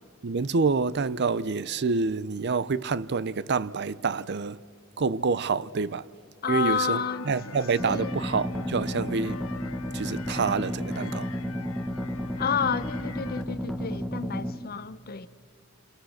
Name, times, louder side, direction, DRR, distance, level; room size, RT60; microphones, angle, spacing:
voice 1, 0.2-4.6 5.0-6.0 6.5-9.4 9.9-11.3, right 4 dB, 55° right, 0.6 m, -27 dB
voice 2, 6.4-7.6 7.8-8.1 12.4-15.3, left 6 dB, 50° left, 0.8 m, -30 dB
sound 1, 6.8-13.4, left 4 dB, 90° left, 1.4 m, -43 dB
sound 2, 7.8-14.6, equal, ahead, 1.4 m, -32 dB
29.0 x 28.0 x 6.5 m
head